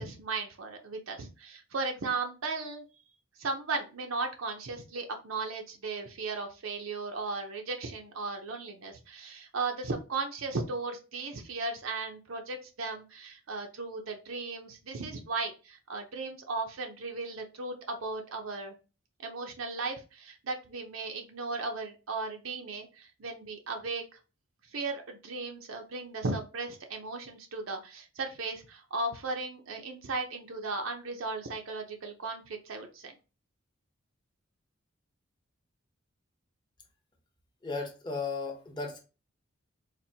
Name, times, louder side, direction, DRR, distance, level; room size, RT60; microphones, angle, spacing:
voice 1, 0.0-2.8 3.4-18.7 19.2-24.0 24.7-33.1, right 3 dB, 75° right, 0.7 m, -36 dB
voice 2, 37.6-39.0, left 4 dB, 20° left, 0.8 m, -35 dB
4.2 x 2.6 x 2.7 m
head